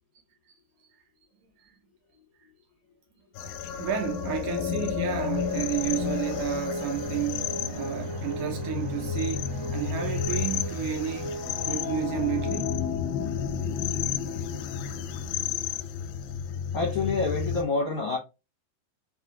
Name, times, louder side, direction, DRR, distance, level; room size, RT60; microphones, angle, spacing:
sound 1, 3.4-17.6, left 8 dB, 85° left, 2.3 m, -31 dB
voice 1, 3.8-12.8, right 10 dB, 75° right, 1.9 m, -32 dB
sound 2, 4.9-13.4, right 2 dB, 55° right, 1.9 m, -38 dB
voice 2, 16.7-18.2, left 3 dB, 65° left, 1.3 m, -27 dB
5.5 x 2.4 x 2.9 m
omnidirectional pair, 4.0 m